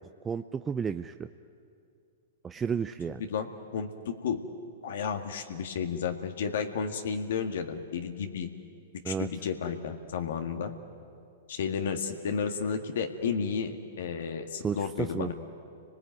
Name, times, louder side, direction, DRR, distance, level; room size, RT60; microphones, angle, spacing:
voice 1, 0.2-1.3 2.4-3.2 9.0-9.3 14.6-15.3, right 6 dB, 15° right, 8 dB, 0.6 m, -32 dB
voice 2, 3.2-4.4 4.8-8.5 9.1-10.7 11.5-15.3, left 6 dB, 70° left, 5 dB, 1.9 m, -32 dB
29.5 x 20.0 x 9.3 m, 2.5 s
hypercardioid pair, 120°, 0 cm